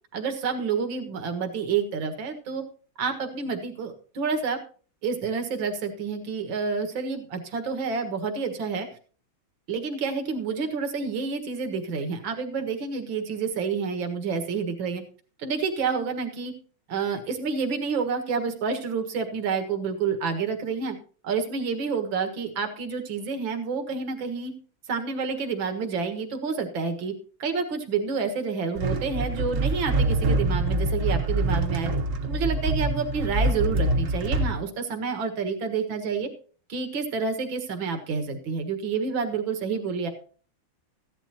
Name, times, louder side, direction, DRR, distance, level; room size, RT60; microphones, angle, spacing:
voice 1, 0.1-2.6 3.0-4.6 5.0-8.9 9.7-15.0 15.4-16.5 16.9-21.0 21.2-24.5 24.9-27.1 27.4-31.9 32.2-36.3 36.7-40.1, right 5 dB, 70° right, 6 dB, 2.4 m, -29 dB
sound 1, 28.8-34.6, right 2 dB, 45° right, 1.3 m, -25 dB
15.0 x 11.0 x 2.9 m, 0.40 s
omnidirectional pair, 2.2 m